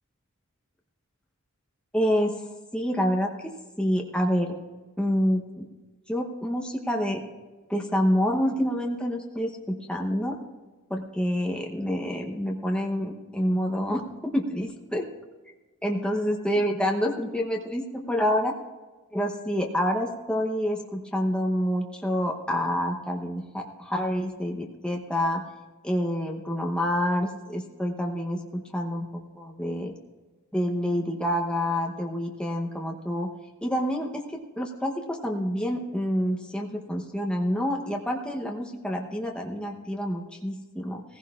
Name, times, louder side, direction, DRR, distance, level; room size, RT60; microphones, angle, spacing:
voice 1, 1.9-2.3 2.7-4.6 5.0-5.6 6.1-7.2 7.7-10.4 10.9-15.1 15.8-18.5 19.1-25.4 25.8-29.9 30.5-33.3 33.6-41.0, equal, 5° left, 0 dB, 0.9 m, -27 dB
16.5 x 15.5 x 2.4 m, 1.3 s
head